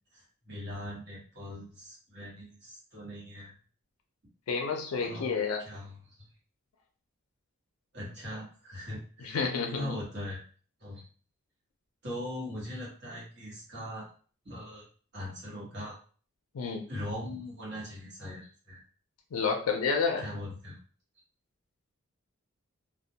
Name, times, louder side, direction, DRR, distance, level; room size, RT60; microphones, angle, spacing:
voice 1, 0.1-3.5 5.0-5.3 5.6-6.0 7.9-9.4 9.8-10.4 10.8-11.0 12.0-14.1 14.4-14.8 15.1-16.0 16.9-18.8 20.2-20.8, left 1 dB, 50° right, -5 dB, 1.1 m, -40 dB
voice 2, 4.5-5.6 9.2-10.0 16.5-16.9 19.3-20.2, left 5 dB, 85° left, 3 dB, 0.4 m, -30 dB
2.2 x 2.1 x 2.7 m, 0.40 s
head